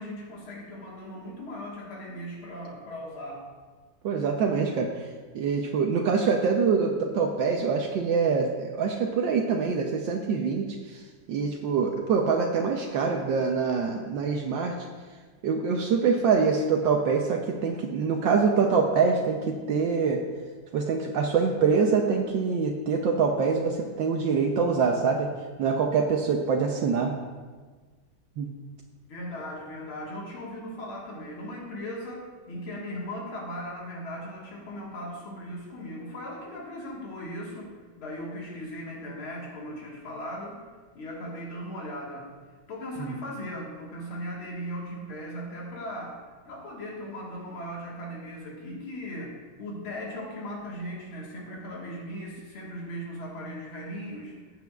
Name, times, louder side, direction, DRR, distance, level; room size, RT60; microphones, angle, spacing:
voice 1, 0.0-3.4 29.1-37.7 38.0-40.6 40.9-42.3 42.7-54.4, equal, 85° left, -3 dB, 2.4 m, -38 dB
voice 2, 4.0-5.1 5.3-11.0 11.3-14.8 15.4-20.2 20.7-25.3 25.6-27.1 28.4-28.5 43.0-43.1, right 5 dB, 70° right, 2 dB, 1.3 m, -25 dB
14.0 x 8.5 x 2.3 m, 1.4 s
omnidirectional pair, 2.3 m